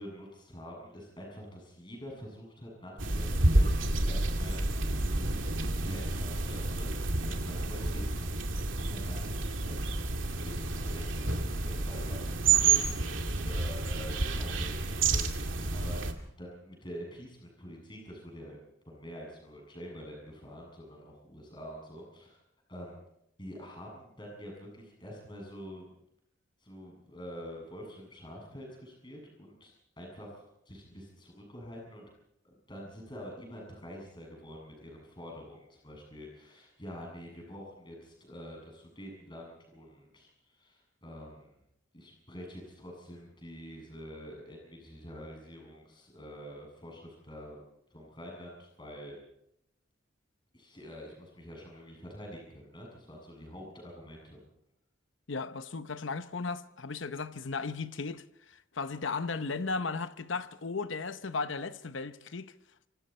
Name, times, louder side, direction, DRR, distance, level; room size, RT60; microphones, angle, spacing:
voice 1, 0.0-8.3 8.5-9.9 10.4-18.6 18.8-22.4 22.7-23.0 23.4-25.9 26.6-32.1 32.7-41.6 41.9-47.6 47.9-49.2 50.5-54.4, equal, 25° left, 7.4 m, -46 dB
sound 1, 3.0-16.1, right 3 dB, 80° right, 2.3 m, -29 dB
voice 2, 55.3-62.5, left 4 dB, 70° left, 0.9 m, -36 dB
26.5 x 25.0 x 4.4 m
head